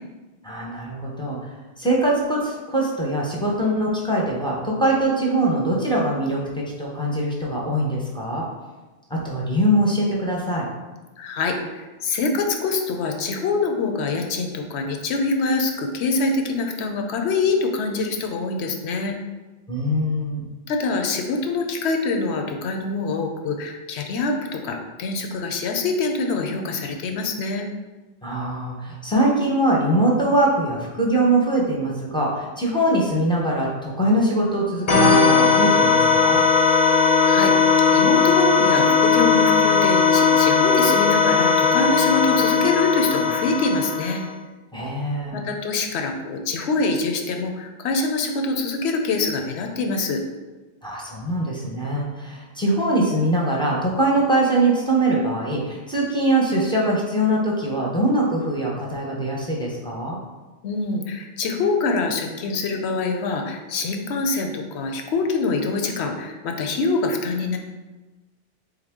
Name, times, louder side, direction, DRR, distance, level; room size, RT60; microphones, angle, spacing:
voice 1, 0.4-1.4 1.8-8.5 9.1-10.7 19.7-20.4 28.2-36.4 44.7-45.4 50.8-60.2, right 1 dB, 5° left, -3 dB, 0.6 m, -22 dB
voice 2, 11.2-19.1 20.7-27.7 37.2-44.2 45.3-50.2 60.6-67.6, left 3 dB, 70° left, 3 dB, 0.8 m, -25 dB
sound 1, 34.9-44.3, left 5 dB, 45° left, 0.5 m, -18 dB
3.6 x 3.4 x 3.5 m, 1.2 s
omnidirectional pair, 1.2 m